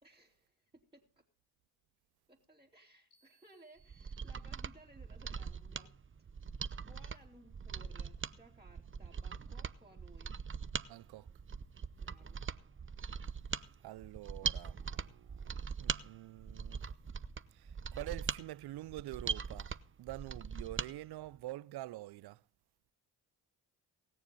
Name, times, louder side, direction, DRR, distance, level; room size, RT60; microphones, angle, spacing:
voice 1, 0.0-1.2 2.3-6.3 6.9-10.4 12.0-12.4, right 1 dB, 10° right, 2.8 m, -61 dB
sound 1, 3.1-5.0, right 4 dB, 70° left, 2.9 m, -72 dB
Mechanisms, 3.8-20.9 21.3-21.4, right 6 dB, 30° right, 0.8 m, -41 dB
voice 2, 10.9-11.3 13.8-16.8 17.5-19.7 20.0-22.4, right 16 dB, 60° right, 0.6 m, -46 dB
19.0 x 7.1 x 5.4 m
hypercardioid pair, 45°, 43 cm